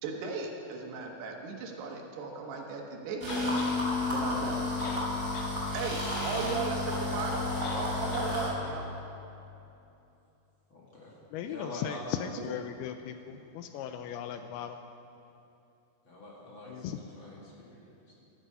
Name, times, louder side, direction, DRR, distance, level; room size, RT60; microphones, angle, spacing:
voice 1, 0.0-3.6 4.1-4.7 5.7-7.5 7.7-8.9, right 4 dB, 80° right, 1 dB, 3.4 m, -36 dB
sound 1, 3.2-8.5, left 2 dB, 20° right, 3.6 m, -31 dB
sound 2, 3.3-3.7 4.5-4.6 4.8-5.5 5.9-6.0 7.6-7.9 8.1-8.3, left 4 dB, 65° left, 2.4 m, -42 dB
voice 2, 10.7-11.1 11.4-12.6 16.0-18.1, left 1 dB, 40° left, -5 dB, 2.2 m, -45 dB
voice 3, 11.3-14.8 16.7-17.0, left 9 dB, 80° left, 8 dB, 2.4 m, -37 dB
14.5 x 12.0 x 5.5 m, 2.8 s
omnidirectional pair, 4.7 m